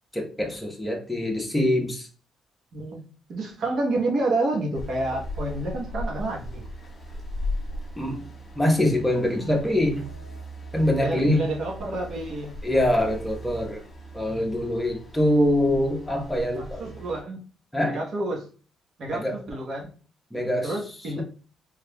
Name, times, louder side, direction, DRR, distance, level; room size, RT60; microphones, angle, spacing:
voice 1, 0.1-2.1 8.0-8.2 8.6-10.1 10.7-11.4 12.6-13.8 14.1-16.8 17.7-18.0 19.1-19.4 20.3-20.8, left 1 dB, 5° left, 1 dB, 1.0 m, -24 dB
voice 2, 2.7-6.6 11.0-12.5 16.5-17.4 17.8-18.5 19.0-19.9 20.6-21.2, right 2 dB, 60° right, 0 dB, 1.0 m, -29 dB
sound 1, 4.7-17.2, equal, 30° left, 1.4 m, -37 dB
3.5 x 3.3 x 2.2 m, 0.39 s
cardioid pair, 90°, 0 cm